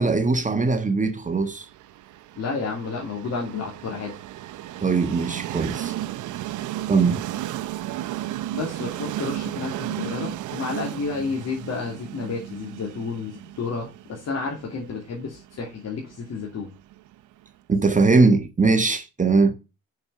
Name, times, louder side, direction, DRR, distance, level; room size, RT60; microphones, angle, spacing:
voice 1, 0.0-1.7 4.8-5.9 6.9-7.2 17.7-19.5, right 3 dB, 25° right, 1.4 m, -20 dB
Train, 1.6-17.4, right 13 dB, 80° right, 0.7 m, -34 dB
voice 2, 2.4-4.1 8.5-16.7, left 4 dB, 60° left, 2.9 m, -31 dB
6.9 x 6.5 x 6.9 m
cardioid pair, 90°, 30 cm